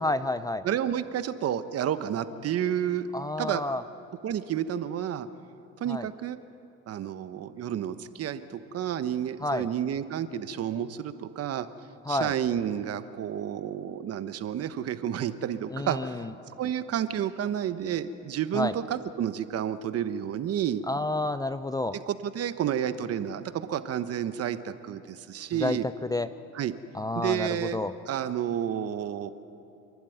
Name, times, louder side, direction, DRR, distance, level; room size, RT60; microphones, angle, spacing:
voice 1, 0.0-0.6 3.1-3.8 5.9-6.1 9.4-9.7 12.1-12.3 15.7-16.3 18.5-18.7 20.9-22.0 25.6-25.8 26.1-26.3 26.9-27.9, left 2 dB, 10° left, 12 dB, 0.5 m, -29 dB
voice 2, 0.6-3.1 3.4-3.6 4.2-5.3 5.8-6.4 6.9-11.7 12.1-16.2 16.6-20.8 21.9-25.9 26.5-26.7 27.1-27.8 28.1-29.3, right 9 dB, 50° right, 11 dB, 1.2 m, -30 dB
27.5 x 11.5 x 9.4 m, 2.7 s
supercardioid pair, 100°, 32 cm